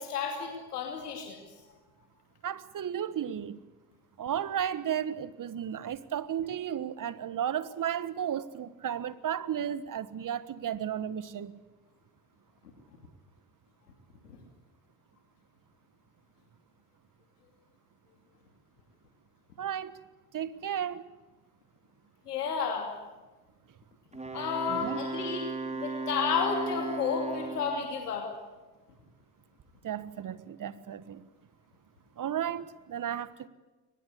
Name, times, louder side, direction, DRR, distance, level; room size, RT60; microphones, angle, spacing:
voice 1, 0.0-1.4 14.2-14.4 22.3-22.9 24.3-28.3, left 6 dB, 90° left, 2.7 m, -32 dB
voice 2, 2.4-3.6 4.2-11.6 19.6-19.9 20.3-21.0 24.7-25.0 29.8-31.2 32.2-33.5, right 9 dB, 45° right, 1.5 m, -34 dB
Wind instrument woodwind instrument, 24.1-27.9, right 3 dB, 15° right, 4.4 m, -36 dB
23.0 x 20.0 x 8.3 m
hypercardioid pair, 55°, 45 cm